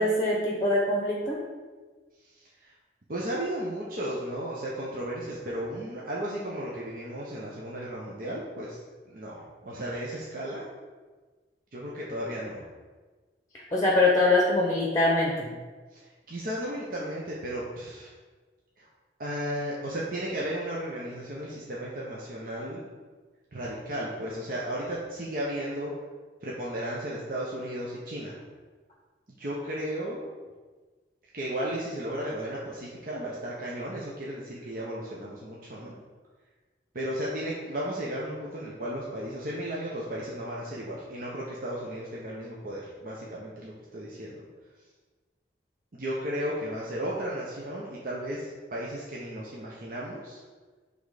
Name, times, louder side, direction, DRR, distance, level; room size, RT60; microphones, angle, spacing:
voice 1, 0.0-1.4 13.7-15.5, left 2 dB, 20° left, -2 dB, 0.8 m, -23 dB
voice 2, 2.3-2.7 3.1-8.8 9.1-10.6 11.7-12.6 15.9-18.1 18.8-18.9 19.2-22.8 23.5-25.9 26.4-28.4 29.3-30.3 31.3-35.9 36.9-44.4 45.9-50.4, right 1 dB, 50° right, -5 dB, 0.9 m, -34 dB
6.1 x 3.5 x 4.9 m, 1.4 s
head